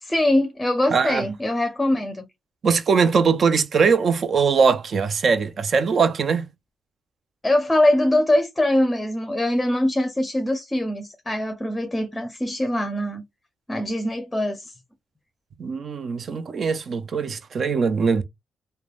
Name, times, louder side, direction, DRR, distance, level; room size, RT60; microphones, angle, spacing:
voice 1, 0.0-2.3 7.4-13.2 13.7-14.7, left 1 dB, 15° left, 0.6 m, -22 dB
voice 2, 0.9-1.2 2.6-6.5 15.6-18.2, right 5 dB, 55° right, 0.5 m, -21 dB
3.2 x 2.2 x 2.4 m
cardioid pair, 70°, 0 cm